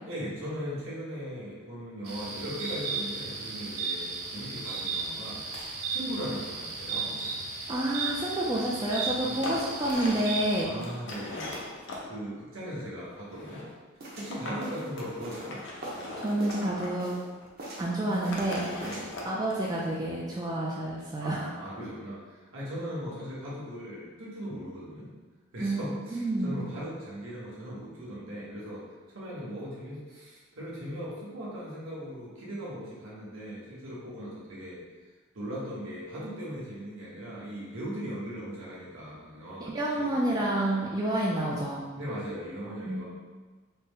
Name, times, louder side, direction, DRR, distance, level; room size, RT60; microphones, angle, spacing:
voice 1, 0.0-5.5 5.9-7.2 9.2-9.4 10.6-13.6 14.1-15.6 18.8-19.2 21.2-25.1 25.5-40.5 42.0-43.1, equal, 65° right, -6 dB, 1.2 m, -39 dB
sound 1, 2.0-10.6, right 4 dB, 90° right, 0.6 m, -35 dB
sound 2, 5.0-5.1 5.3-5.7 6.8-8.0 8.9-9.0 9.3-10.4 10.7-12.1 13.0-13.7 14.3-14.6 15.0-17.1 17.4-17.5 18.0-19.8, left 2 dB, 60° left, 0.6 m, -40 dB
voice 2, 7.7-10.7 16.2-17.1 17.8-18.6 19.3-21.5 25.6-25.9 26.1-26.6 39.6-41.8 42.9-43.0, right 1 dB, 20° right, -5 dB, 0.3 m, -29 dB
sound 3, 14.0-16.1 16.4-17.3 17.6-18.5 18.8-19.1, right 1 dB, 45° right, 0.8 m, -41 dB
4.1 x 2.1 x 3.6 m, 1.3 s
head